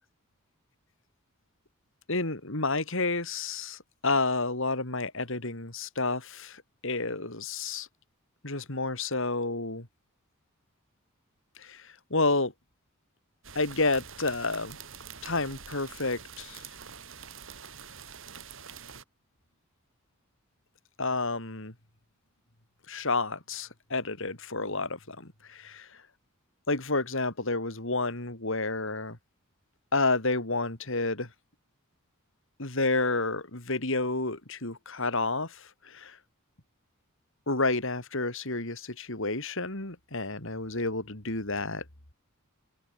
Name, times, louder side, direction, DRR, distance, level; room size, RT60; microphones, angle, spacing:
voice 1, 2.1-7.9 8.4-9.9 11.6-12.5 13.5-14.8 15.2-16.6 21.0-21.7 22.9-25.9 26.7-29.2 29.9-31.3 32.6-36.2 37.5-41.8, left 3 dB, 65° left, 4.2 m, -30 dB
sound 1, 13.4-19.0, right 7 dB, 65° right, 7.7 m, -46 dB
head